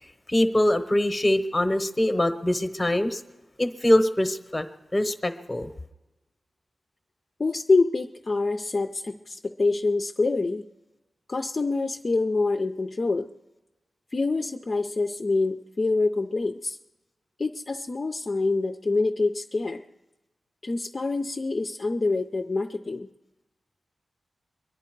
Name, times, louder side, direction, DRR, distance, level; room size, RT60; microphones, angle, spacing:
voice 1, 0.3-3.2 3.6-4.6 4.9-5.7, left 1 dB, 15° left, 9 dB, 0.9 m, -23 dB
voice 2, 7.4-10.6 11.3-13.3 14.1-16.8 17.4-19.8 20.6-23.1, left 3 dB, 35° left, 4 dB, 0.5 m, -26 dB
23.5 x 10.5 x 4.6 m, 1.1 s
wide cardioid pair, 155°, 0 cm